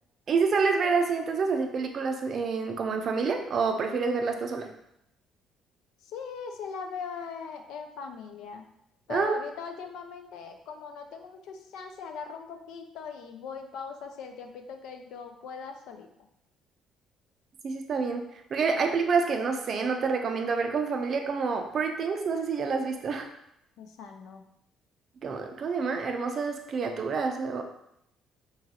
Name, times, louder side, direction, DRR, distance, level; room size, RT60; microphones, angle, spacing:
voice 1, 0.3-4.7 9.1-9.4 17.6-18.2 18.5-23.3 25.2-27.6, right 5 dB, 45° right, 4 dB, 0.4 m, -28 dB
voice 2, 6.0-8.7 9.1-16.1 23.8-24.5, left 5 dB, 80° left, 5 dB, 0.4 m, -40 dB
2.9 x 2.4 x 2.8 m, 0.78 s
cardioid pair, 115°, 0 cm